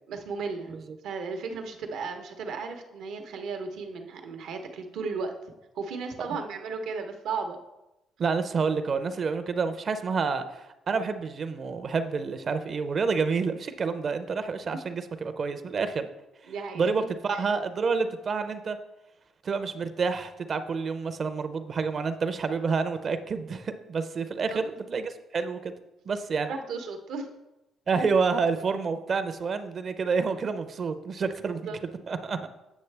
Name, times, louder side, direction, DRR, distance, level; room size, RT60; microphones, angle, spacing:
voice 1, 0.1-0.7 1.0-5.3 5.7-7.6 14.7-14.9 16.5-17.1 17.3-17.5 24.5-24.6 26.4-27.3 31.6-31.8, right 4 dB, 80° right, 5 dB, 0.9 m, -35 dB
voice 2, 8.2-16.1 16.7-18.8 19.4-25.7 26.1-26.5 27.9-31.6 32.1-32.5, right 5 dB, 50° right, 10 dB, 0.6 m, -28 dB
8.3 x 6.4 x 3.3 m, 0.97 s
cardioid pair, 90°, 0 cm